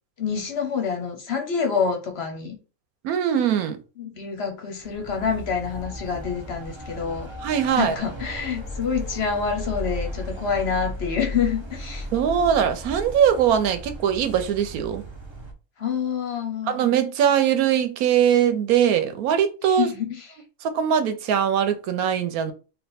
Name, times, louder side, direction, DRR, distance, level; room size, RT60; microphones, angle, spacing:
voice 1, 0.2-2.6 4.0-7.3 7.8-12.1 15.8-16.9 19.6-20.4, left 6 dB, 55° left, 0.9 m, -27 dB
voice 2, 3.0-3.8 7.4-7.9 12.1-15.0 16.7-19.9 20.6-22.5, right 9 dB, 90° right, 1.1 m, -21 dB
sound 1, 4.8-15.5, left 1 dB, 25° right, 0.6 m, -35 dB
3.4 x 2.5 x 4.1 m
omnidirectional pair, 1.5 m